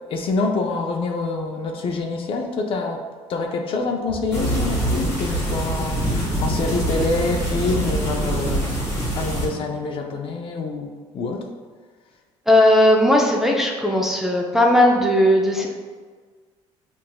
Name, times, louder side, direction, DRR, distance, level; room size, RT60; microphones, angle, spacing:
voice 1, 0.1-3.0 3.3-11.5, left 3 dB, 50° left, 3 dB, 0.5 m, -26 dB
sound 1, 4.3-9.5, right 1 dB, 25° left, 1.2 m, -24 dB
voice 2, 12.5-15.7, left 1 dB, 5° right, -1 dB, 0.5 m, -17 dB
5.8 x 2.5 x 2.2 m, 1.5 s
cardioid pair, 110°, 12 cm